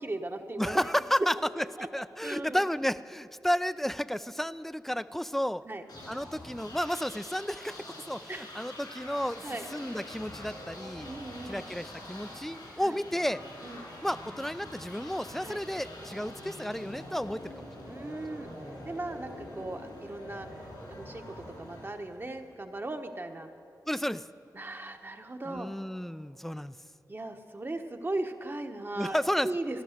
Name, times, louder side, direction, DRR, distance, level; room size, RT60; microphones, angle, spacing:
voice 1, 0.0-0.8 1.8-1.9 2.2-2.6 5.6-5.8 8.3-8.6 9.4-9.6 11.0-11.6 12.8-13.0 13.6-13.9 15.4-15.6 17.9-18.5 18.8-21.2 21.6-23.5 24.5-25.7 27.1-29.2 29.4-29.8, right 2 dB, 30° right, 5 dB, 1.1 m, -38 dB
voice 2, 0.6-1.6 1.9-5.6 6.1-9.4 9.7-11.1 11.4-13.4 14.0-18.1 18.6-18.9 23.9-24.2 25.5-26.7 29.0-29.5, equal, 5° left, 15 dB, 0.4 m, -32 dB
sound 1, 5.9-22.6, left 1 dB, 90° left, 4.1 m, -45 dB
14.5 x 12.0 x 6.5 m, 2.8 s
wide cardioid pair, 70°, 7 cm